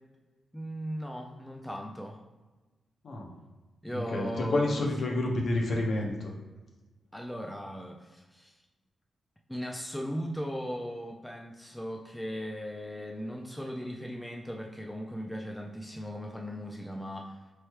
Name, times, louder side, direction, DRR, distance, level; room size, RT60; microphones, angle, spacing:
voice 1, 0.5-2.2 3.8-4.9 7.1-8.6 9.5-17.4, equal, 5° left, 1 dB, 0.3 m, -38 dB
voice 2, 3.9-6.3, left 2 dB, 55° left, 0 dB, 0.8 m, -29 dB
4.6 x 3.2 x 3.0 m, 1.2 s
wide cardioid pair, 150°, 0 cm